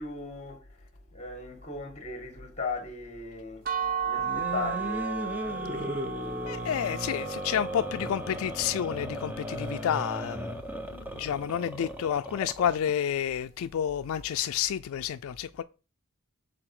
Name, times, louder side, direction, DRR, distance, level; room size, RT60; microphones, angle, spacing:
voice 1, 0.0-6.8 10.8-11.1, left 3 dB, 30° left, 1.7 m, -39 dB
sound 1, 3.7-9.5, right 6 dB, 40° right, 0.9 m, -35 dB
sound 2, 4.1-12.9, right 1 dB, 10° right, 0.7 m, -36 dB
voice 2, 6.5-10.6 10.9-15.6, left 9 dB, 70° left, 0.3 m, -30 dB
6.8 x 3.8 x 5.9 m
head